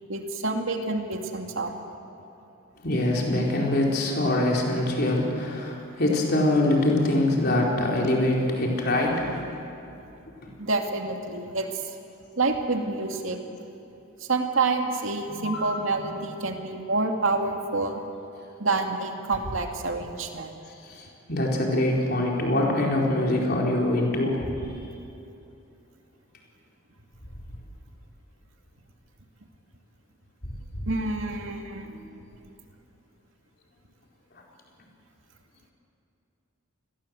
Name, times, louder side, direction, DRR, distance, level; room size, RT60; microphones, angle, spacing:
voice 1, 0.1-1.7 10.6-11.8 12.4-13.4 14.2-18.0 18.6-20.5 30.9-31.9, right 3 dB, 65° right, 3 dB, 2.5 m, -28 dB
voice 2, 2.8-9.5 15.3-16.0 20.9-24.7 30.7-30.9 31.9-32.1, left 1 dB, 50° left, -2 dB, 4.4 m, -24 dB
29.0 x 21.0 x 7.9 m, 2.8 s
head